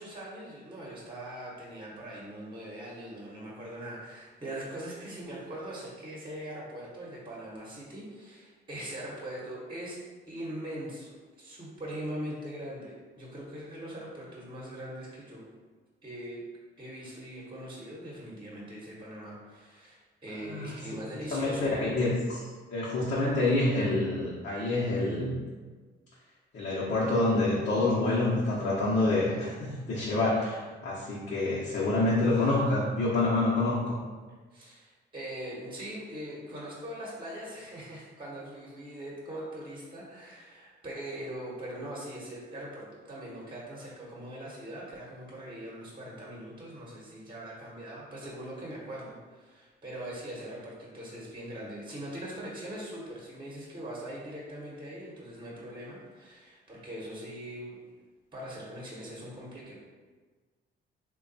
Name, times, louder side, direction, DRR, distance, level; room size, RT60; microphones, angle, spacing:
voice 1, 0.0-10.0 10.3-15.5 16.0-16.4 16.8-21.7 34.5-57.9 58.3-59.8, right 1 dB, 25° right, -4 dB, 1.0 m, -41 dB
voice 2, 20.4-20.7 21.3-22.4 22.7-25.3 26.5-34.0, left 2 dB, 55° left, -8 dB, 0.9 m, -27 dB
3.4 x 2.3 x 4.0 m, 1.4 s
cardioid pair, 90°, 20 cm